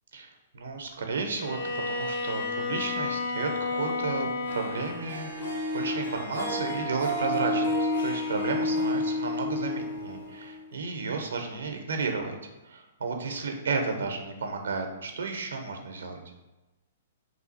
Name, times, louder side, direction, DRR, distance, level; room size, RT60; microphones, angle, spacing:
voice 1, 0.1-1.6 1.9-3.5 3.8-12.4 12.6-16.2, right 4 dB, 70° right, 4 dB, 0.5 m, -33 dB
Bowed string instrument, 1.4-5.1, left 3 dB, 55° left, 0.4 m, -31 dB
Harp, 4.4-10.7, left 1 dB, 70° left, 0.9 m, -30 dB
3.0 x 2.4 x 3.9 m, 1.0 s
figure-of-eight pair, 115°, 0 cm